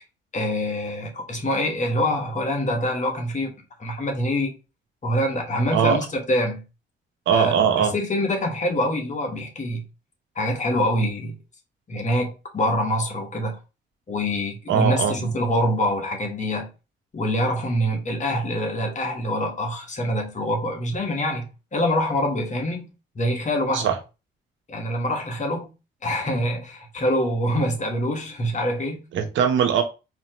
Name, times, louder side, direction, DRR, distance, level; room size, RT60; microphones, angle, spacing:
voice 1, 0.3-3.5 3.8-4.5 5.0-6.6 7.3-7.5 7.9-9.8 10.3-11.3 11.9-13.6 14.1-16.7 17.1-21.4 21.7-22.9 23.1-23.9 24.7-25.7 26.0-29.0, equal, 40° left, 1.4 m, -25 dB
voice 2, 7.3-7.9 14.7-15.3 23.7-24.0 29.1-29.8, right 7 dB, 75° right, 1.0 m, -20 dB
4.2 x 3.0 x 2.9 m
cardioid pair, 90°, 20 cm